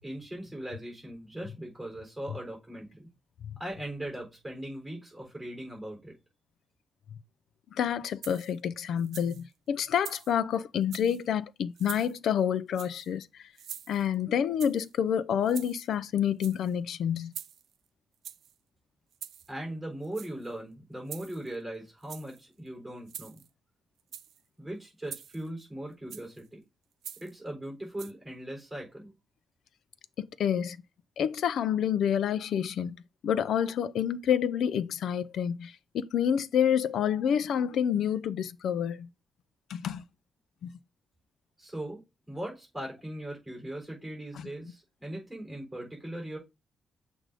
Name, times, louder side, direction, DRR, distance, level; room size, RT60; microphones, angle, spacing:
voice 1, 0.0-3.1 3.6-6.1 19.5-23.4 24.6-26.6 27.2-29.1 41.6-42.0 42.3-46.4, right 1 dB, 5° right, 3.8 m, -39 dB
voice 2, 7.7-13.5 13.9-17.3 30.2-30.8 31.2-33.0 33.2-39.1 39.7-40.0 40.6-40.7 44.3-44.5, left 8 dB, 70° left, 0.4 m, -28 dB
sound 1, 8.2-8.6 9.0-9.4 9.9-10.4 10.8-11.2 11.8-12.2 12.7-13.1 13.6-14.2 14.6-14.9 15.4-16.0 16.3-16.7 17.3-17.7 18.2-18.5 19.1-19.5 20.0-20.5 21.1-21.6 22.0-22.4 23.1-23.5 24.0-24.4 25.1-25.5 26.1-26.4 27.0-27.4 28.0-28.1, right 9 dB, 70° right, 0.4 m, -45 dB
7.4 x 2.6 x 4.8 m
wide cardioid pair, 160°, 0 cm